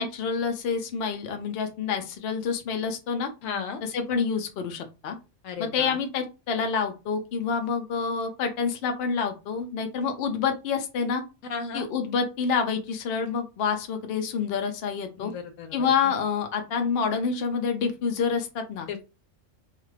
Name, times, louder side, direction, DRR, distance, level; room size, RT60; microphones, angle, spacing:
voice 1, 0.0-3.3 3.9-5.2 5.6-11.2 11.7-15.3 15.7-18.9, left 6 dB, 60° left, 5 dB, 0.7 m, -27 dB
voice 2, 3.4-3.8 5.4-6.0 11.5-11.9 15.2-16.1 18.9-19.0, left 5 dB, 85° left, 8 dB, 1.0 m, -35 dB
2.4 x 2.4 x 3.2 m, 0.29 s
omnidirectional pair, 1.3 m